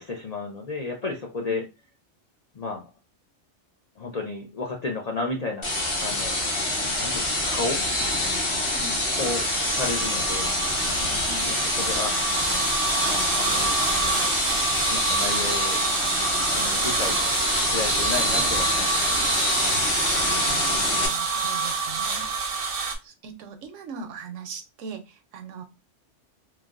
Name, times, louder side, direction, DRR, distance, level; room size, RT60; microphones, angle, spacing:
voice 1, 0.0-1.7 2.5-2.9 4.0-5.7 6.0-6.4 7.0-7.8 9.2-10.5 11.5-12.2 13.0-13.7 14.9-15.8 16.5-17.2 17.6-19.2, left 3 dB, 65° left, 1 dB, 0.4 m, -32 dB
sound 1, 5.6-21.1, left 1 dB, 30° left, 0.6 m, -26 dB
sound 2, 8.8-22.9, right 5 dB, 55° right, 0.7 m, -28 dB
voice 2, 20.3-25.6, right 4 dB, 80° right, 7 dB, 0.9 m, -41 dB
3.2 x 2.2 x 2.4 m, 0.27 s
omnidirectional pair, 1.3 m